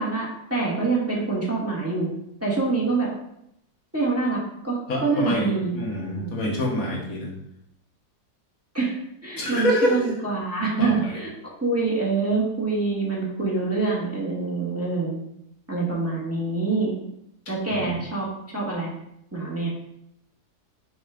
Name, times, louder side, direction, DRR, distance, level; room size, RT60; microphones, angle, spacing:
voice 1, 0.0-2.1 2.4-3.1 3.9-5.8 6.1-6.3 8.7-15.2 15.7-16.9 17.5-18.3 18.5-18.9 19.3-19.7, right 3 dB, 10° right, -5 dB, 1.6 m, -25 dB
voice 2, 4.9-7.3 9.4-10.1 10.8-11.2 17.7-18.0, equal, 65° left, -2 dB, 1.7 m, -26 dB
5.9 x 4.3 x 4.9 m, 0.78 s
omnidirectional pair, 1.7 m